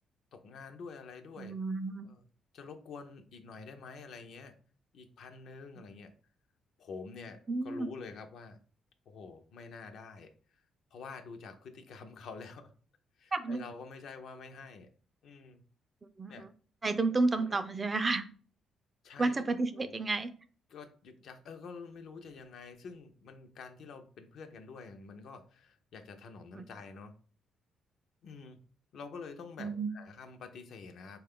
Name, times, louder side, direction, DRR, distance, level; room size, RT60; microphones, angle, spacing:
voice 1, 0.3-1.6 2.0-2.2 2.5-4.6 4.9-6.1 6.8-8.6 9.1-10.6 10.9-12.7 13.2-14.9 15.2-15.6 16.3-16.5 17.4-17.6 19.0-19.4 19.7-19.9 20.7-27.1 28.2-28.6 28.9-31.2, left 4 dB, 70° left, 7 dB, 0.5 m, -47 dB
voice 2, 1.4-2.1 7.5-7.9 13.3-13.6 16.2-16.5 16.8-18.3 19.2-20.3 26.6-26.7 29.6-29.9, right 3 dB, 30° right, 10 dB, 0.4 m, -31 dB
3.6 x 2.3 x 3.5 m, 0.42 s
cardioid pair, 90°, 0 cm